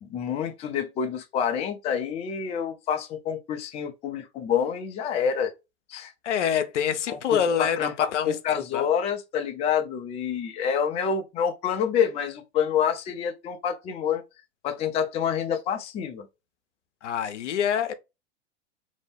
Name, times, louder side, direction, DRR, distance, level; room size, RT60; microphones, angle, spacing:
voice 1, 0.0-5.5 5.9-6.1 7.1-7.9 8.2-14.2 14.6-16.3, left 7 dB, 20° left, 0.4 m, -27 dB
voice 2, 6.2-8.9 17.0-17.9, left 8 dB, 80° left, 0.6 m, -26 dB
2.6 x 2.1 x 3.4 m
hypercardioid pair, 100°, 35 cm